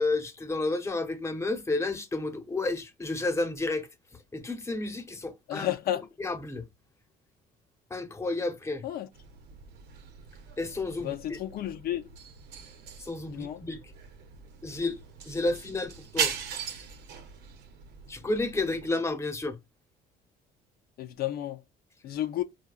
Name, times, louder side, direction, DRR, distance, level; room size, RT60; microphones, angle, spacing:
voice 1, 0.0-3.9 4.3-5.7 6.2-6.6 7.9-8.8 10.6-11.4 13.0-13.9 14.6-15.0 15.3-16.3 18.1-19.6, left 2 dB, 15° left, 0.9 m, -31 dB
voice 2, 5.5-6.0 8.8-9.1 11.0-12.0 13.3-13.6 21.0-21.6 22.0-22.4, left 12 dB, 65° left, 0.5 m, -32 dB
sound 1, 9.1-18.9, right 7 dB, 85° right, 0.9 m, -39 dB
4.6 x 2.3 x 2.3 m
cardioid pair, 110°, 17 cm